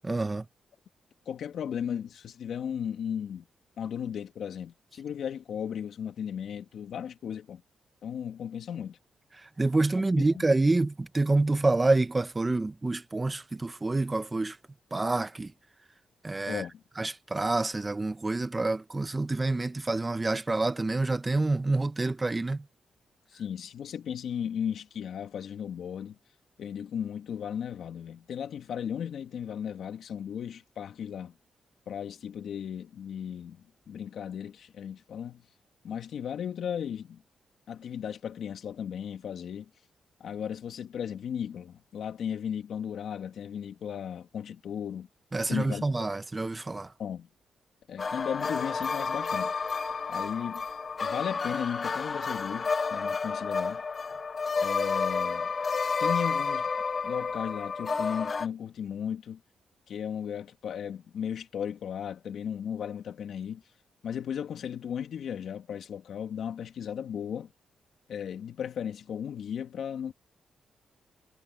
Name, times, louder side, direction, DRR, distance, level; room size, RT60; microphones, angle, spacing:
voice 1, 0.0-0.4 9.6-14.5 14.9-15.5 16.2-16.6 17.0-22.6 45.3-46.9, right 2 dB, 20° right, 1.1 m, -27 dB
voice 2, 1.3-3.4 3.8-7.6 8.0-9.0 10.3-10.4 16.5-16.8 23.3-26.2 26.6-31.4 31.9-35.5 35.8-37.2 37.7-39.7 40.2-45.1 45.5-46.1 47.0-47.3 47.9-49.5 50.1-50.6 51.0-53.8 54.6-55.5 56.0-56.7 57.0-59.4 59.9-63.6 64.0-67.5 68.1-70.1, left 8 dB, 75° left, 2.9 m, -36 dB
sound 1, 48.0-58.5, left 5 dB, 40° left, 1.8 m, -30 dB
cardioid pair, 85°, 0 cm